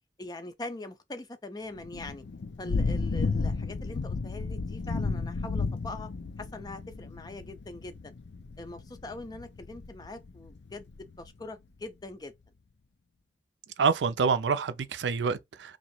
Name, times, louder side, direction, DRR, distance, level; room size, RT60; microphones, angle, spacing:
voice 1, 0.2-2.2 2.6-6.1 6.4-8.1 8.6-12.3, left 2 dB, 20° left, 0.4 m, -42 dB
Thunder / Rain, 1.7-11.3, left 4 dB, 85° left, 0.5 m, -33 dB
voice 2, 13.8-15.8, right 5 dB, 85° right, 0.4 m, -27 dB
2.9 x 2.6 x 4.3 m
head